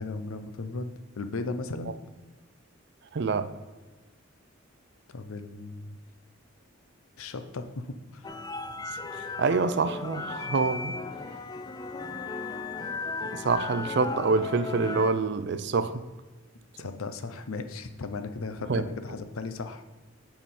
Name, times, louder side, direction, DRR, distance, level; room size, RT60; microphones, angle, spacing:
voice 1, 0.0-2.0 5.1-6.0 7.2-8.3 16.8-19.8, left 3 dB, 85° left, 0.6 m, -36 dB
voice 2, 3.1-3.6 9.1-11.0 13.2-16.0 18.7-18.8, right 4 dB, 55° right, 0.4 m, -26 dB
sound 1, 8.2-15.1, left 3 dB, 20° left, 0.3 m, -36 dB
8.9 x 4.8 x 4.2 m
head